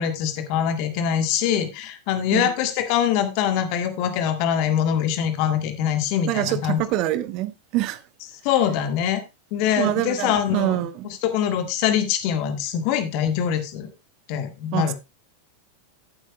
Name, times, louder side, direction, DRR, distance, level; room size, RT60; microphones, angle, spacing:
voice 1, 0.0-6.8 8.4-9.2 9.5-13.9 14.3-14.9, left 9 dB, 45° left, 8 dB, 1.6 m, -23 dB
voice 2, 6.3-8.0 9.8-11.1 14.7-14.9, right 15 dB, 40° right, 14 dB, 0.8 m, -25 dB
15.0 x 8.2 x 2.2 m, 0.24 s
figure-of-eight pair, 90°, 0 cm